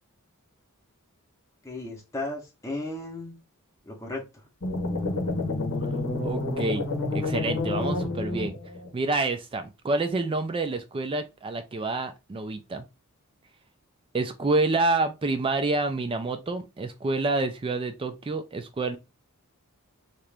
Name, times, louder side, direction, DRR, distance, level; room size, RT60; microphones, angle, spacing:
voice 1, 1.6-3.4 3.8-4.4, left 2 dB, 15° left, 0.8 m, -35 dB
sound 1, 4.6-8.9, left 2 dB, 60° left, 0.8 m, -29 dB
voice 2, 6.2-6.9 7.1-8.6 8.9-12.8 14.1-19.0, right 3 dB, 25° right, 0.3 m, -28 dB
2.8 x 2.4 x 3.3 m
head